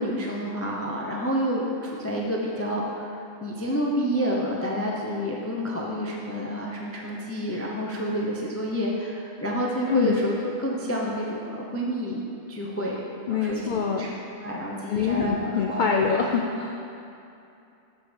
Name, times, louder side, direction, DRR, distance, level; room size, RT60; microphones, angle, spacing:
voice 1, 0.0-3.1 3.4-13.0 13.3-13.6 14.0-14.1 14.4-16.1, equal, 15° left, -3 dB, 0.5 m, -29 dB
voice 2, 13.3-14.1 14.9-16.8, left 6 dB, 70° left, 1 dB, 0.4 m, -25 dB
7.0 x 6.1 x 5.1 m, 2.6 s
omnidirectional pair, 1.4 m